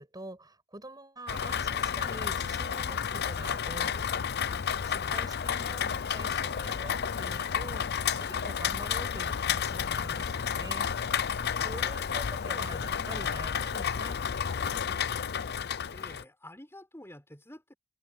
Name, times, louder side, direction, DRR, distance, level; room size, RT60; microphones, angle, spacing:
voice 1, 0.0-4.5 4.8-11.3 11.6-14.2, right 1 dB, 20° right, 7.6 m, -46 dB
Rain, 1.3-16.2, left 7 dB, 50° left, 0.5 m, -31 dB
voice 2, 15.9-17.7, left 1 dB, 10° left, 5.6 m, -49 dB
head